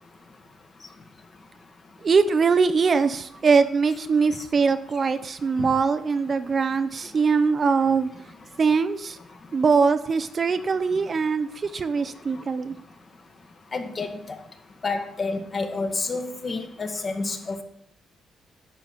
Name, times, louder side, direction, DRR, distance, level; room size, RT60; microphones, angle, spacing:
voice 1, 2.0-8.1 8.6-9.2 9.5-12.7, right 5 dB, 40° right, 11 dB, 0.6 m, -22 dB
voice 2, 13.7-14.4 14.8-17.6, left 3 dB, 35° left, 6 dB, 1.4 m, -29 dB
11.0 x 4.0 x 7.3 m, 0.74 s
cardioid pair, 90°, 0 cm